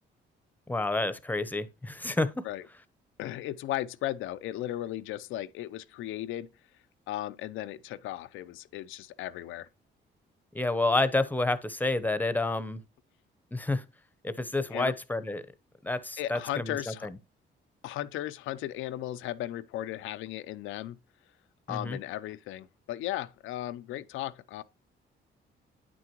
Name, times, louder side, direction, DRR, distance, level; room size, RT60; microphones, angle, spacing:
voice 1, 0.7-2.5 10.5-12.8 13.5-13.8 14.2-15.4 15.8-17.1 21.7-22.0, left 2 dB, 10° left, 0.8 m, -29 dB
voice 2, 3.2-6.5 7.1-9.7 14.7-14.9 16.2-17.1 17.8-21.0 21.7-24.6, left 13 dB, 90° left, 0.5 m, -36 dB
9.3 x 6.1 x 3.0 m
cardioid pair, 90°, 20 cm